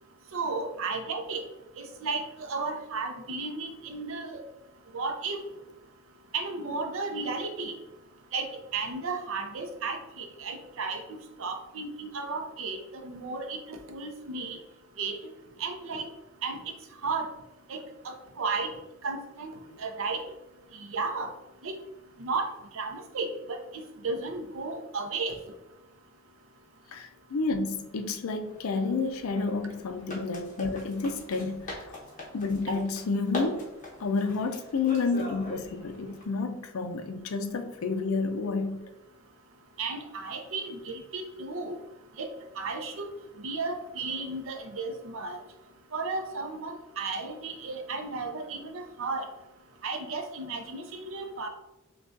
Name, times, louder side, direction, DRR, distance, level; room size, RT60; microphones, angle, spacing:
voice 1, 0.3-1.4 1.8-4.4 4.9-5.4 6.3-7.7 8.3-8.5 8.7-11.0 11.4-14.6 15.0-15.1 15.6-16.1 16.4-16.6 17.0-17.3 17.7-17.8 18.0-18.7 19.0-19.5 19.8-20.2 20.7-21.3 21.6-21.7 22.2-22.5 22.7-25.4 39.8-41.8 42.2-43.0 43.4-45.4 45.9-49.3 49.8-51.5, right 4 dB, 60° right, 5 dB, 0.6 m, -34 dB
voice 2, 26.9-31.8 32.3-33.6 34.0-38.9, left 4 dB, 65° left, 8 dB, 0.4 m, -30 dB
sound 1, 28.4-36.2, left 2 dB, 35° left, 1.0 m, -42 dB
6.0 x 2.3 x 2.5 m, 1.0 s
head